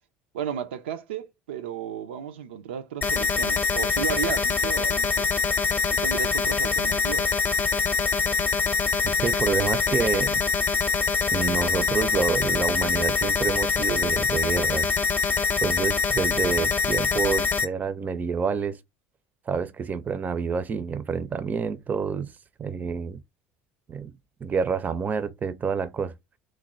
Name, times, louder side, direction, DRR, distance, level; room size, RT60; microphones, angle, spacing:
voice 1, 0.3-5.3 5.9-7.3, right 8 dB, 85° right, 0.5 m, -34 dB
sound 1, 3.0-17.6, left 5 dB, 30° left, 0.7 m, -24 dB
voice 2, 9.0-10.4 11.3-14.9 15.6-18.8 19.5-22.3 22.6-23.2 23.9-24.1 24.4-26.1, right 6 dB, 30° right, 0.5 m, -28 dB
3.2 x 2.2 x 3.7 m
hypercardioid pair, 80°, 6 cm